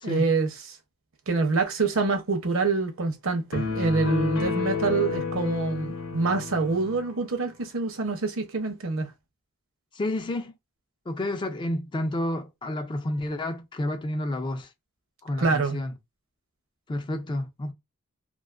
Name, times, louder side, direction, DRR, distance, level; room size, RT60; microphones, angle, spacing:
voice 1, 0.0-0.8 1.3-9.1 15.4-15.8, right 3 dB, 65° right, 0.6 m, -26 dB
sound 1, 3.5-7.1, left 5 dB, 90° left, 0.8 m, -30 dB
voice 2, 9.9-10.5 11.1-14.7 15.2-15.9 16.9-17.7, left 1 dB, 20° left, 0.3 m, -30 dB
2.4 x 2.2 x 2.4 m
head